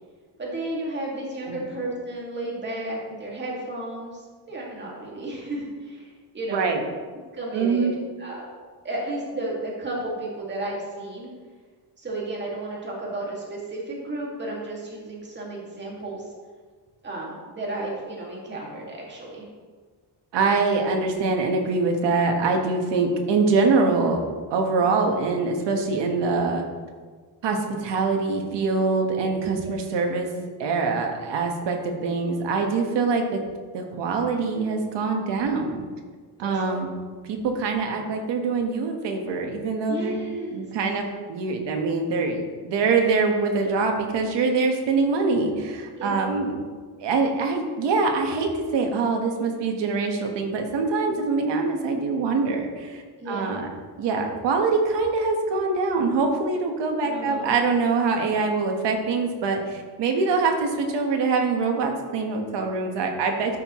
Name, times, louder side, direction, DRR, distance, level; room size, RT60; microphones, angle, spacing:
voice 1, 0.4-4.2 4.5-6.7 7.3-7.9 8.2-8.5 8.8-11.3 12.0-16.2 17.0-19.5 24.8-24.9 29.6-29.7 36.4-36.8 39.9-40.6 46.0-46.1 51.1-51.2 53.2-53.5 57.0-57.5, right 1 dB, 25° right, -4 dB, 2.1 m, -33 dB
voice 2, 6.5-6.8 7.5-8.0 20.3-24.2 24.5-26.6 27.4-30.3 30.6-33.4 33.7-35.8 36.4-36.9 37.3-40.2 40.5-46.6 47.0-53.7 54.0-63.6, right 4 dB, 80° right, 3 dB, 1.4 m, -24 dB
13.0 x 5.7 x 3.1 m, 1.5 s
cardioid pair, 145°, 42 cm